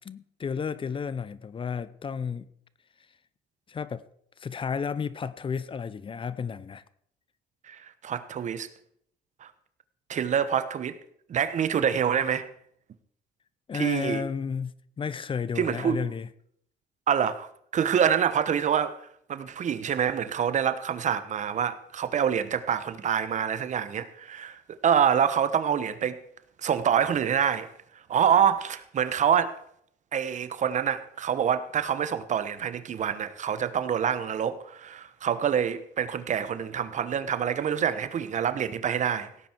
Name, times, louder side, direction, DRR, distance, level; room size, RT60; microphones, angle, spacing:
voice 1, 0.0-2.5 3.7-4.1 4.4-6.8 13.7-16.3, left 6 dB, 30° left, 0.7 m, -32 dB
voice 2, 7.7-8.7 9.4-9.5 10.1-11.0 11.3-12.5 13.7-14.2 15.6-16.1 17.1-17.5 17.7-19.0 19.3-26.2 26.6-27.7 28.1-29.6 30.1-39.3, right 8 dB, 45° right, 1.1 m, -26 dB
17.0 x 9.3 x 4.6 m
cardioid pair, 110°, 17 cm